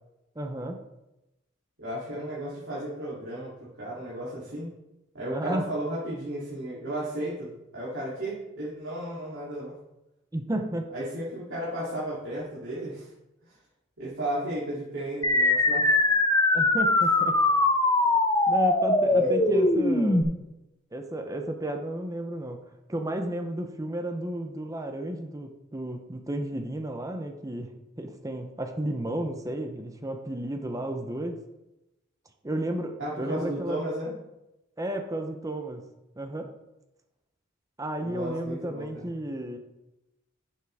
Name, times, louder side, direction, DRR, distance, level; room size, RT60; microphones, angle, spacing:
voice 1, 0.4-0.8 5.3-5.6 10.3-10.9 16.5-17.4 18.5-20.3 20.9-31.4 32.4-33.8 34.8-35.9 36.2-36.5 37.8-39.6, right 1 dB, 15° right, 5 dB, 0.7 m, -33 dB
voice 2, 1.8-3.5 3.8-4.7 5.1-9.7 10.9-13.1 13.4-13.6 14.0-16.0 19.1-19.7 33.0-34.2 38.0-39.1, right 1 dB, 75° right, -9 dB, 3.0 m, -34 dB
sound 1, 15.2-20.2, left 2 dB, 20° left, 0.8 m, -22 dB
11.0 x 7.3 x 3.5 m, 0.95 s
head